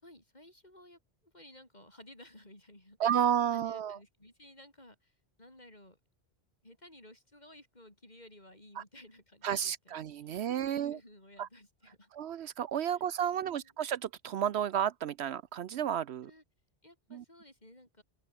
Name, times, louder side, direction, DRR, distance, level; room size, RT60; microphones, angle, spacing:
voice 1, 0.0-6.0 6.6-12.1 12.9-13.7 16.2-16.4 16.8-18.0, left 1 dB, 40° left, 7.1 m, -56 dB
voice 2, 3.0-4.0 8.8-8.9 9.4-11.0 11.4-11.5 12.1-16.3 17.1-17.2, right 9 dB, 70° right, 0.9 m, -32 dB
open air
omnidirectional pair, 1.2 m